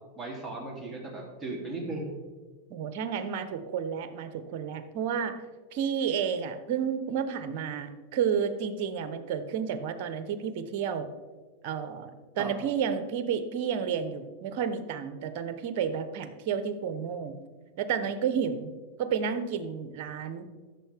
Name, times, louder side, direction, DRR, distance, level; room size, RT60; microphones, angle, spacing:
voice 1, 0.2-2.0 12.4-12.5, right 2 dB, 10° right, -3 dB, 3.1 m, -36 dB
voice 2, 2.7-5.3 5.7-11.1 11.6-17.3 17.8-18.7 19.0-20.4, right 7 dB, 55° right, 10 dB, 1.0 m, -31 dB
14.0 x 6.5 x 3.6 m, 1.4 s
hypercardioid pair, 115°, 0 cm